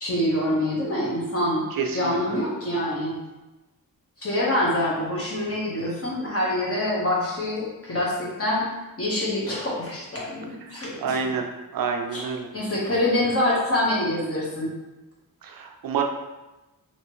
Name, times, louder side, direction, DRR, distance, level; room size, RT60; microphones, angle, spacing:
voice 1, 0.0-1.6 1.9-3.2 4.2-8.7 9.0-11.2 12.1-12.2 12.5-14.7, left 1 dB, 40° left, -5 dB, 1.1 m, -25 dB
voice 2, 1.7-2.4 10.7-11.4 11.7-12.5 15.4-16.0, right 6 dB, 75° right, 3 dB, 0.5 m, -28 dB
3.0 x 2.9 x 3.0 m, 1.1 s
wide cardioid pair, 95°, 35 cm